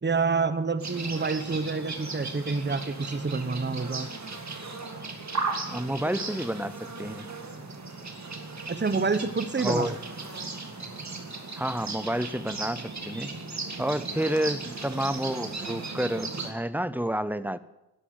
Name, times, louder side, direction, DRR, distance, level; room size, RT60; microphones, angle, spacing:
voice 1, 0.0-4.1 8.7-9.9, right 4 dB, 30° right, 12 dB, 0.9 m, -28 dB
sound 1, 0.8-16.5, right 3 dB, 45° right, 2.1 m, -36 dB
voice 2, 5.7-7.3 9.6-10.0 11.6-13.3 13.8-17.6, equal, 5° right, 15 dB, 0.5 m, -30 dB
12.5 x 10.0 x 9.3 m, 0.97 s
wide cardioid pair, 120°, 37 cm